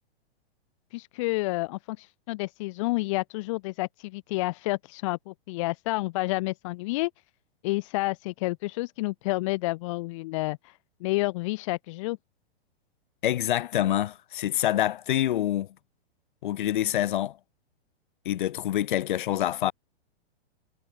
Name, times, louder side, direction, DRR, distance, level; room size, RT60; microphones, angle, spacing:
voice 1, 0.9-7.1 7.6-12.2, left 22 dB, 30° left, 1.9 m, -30 dB
voice 2, 13.2-15.7 16.4-17.4 18.2-19.7, left 12 dB, 50° left, 4.3 m, -26 dB
hypercardioid pair, 175°, 32 cm